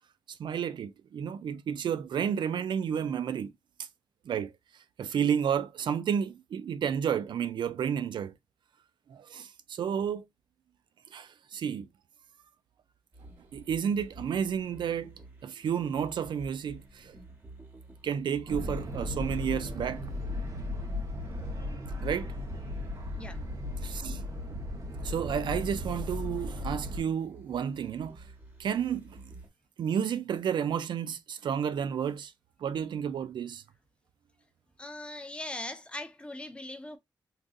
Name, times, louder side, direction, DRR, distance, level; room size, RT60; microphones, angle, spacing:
voice 1, 0.4-3.5 4.3-4.5 5.0-8.3 9.1-10.2 11.1-11.9 13.5-15.1 15.4-17.2 18.0-20.0 22.0-22.3 23.8-24.2 25.0-28.2 28.6-29.2 29.8-32.3 32.6-33.6, right 8 dB, 85° right, 0.4 m, -31 dB
sound 1, 13.1-29.5, right 2 dB, 20° right, 1.2 m, -51 dB
sound 2, 18.5-27.0, left 2 dB, 45° right, 0.9 m, -36 dB
voice 2, 34.8-37.0, left 1 dB, 15° left, 0.5 m, -40 dB
3.8 x 2.6 x 2.3 m
wide cardioid pair, 145°, 8 cm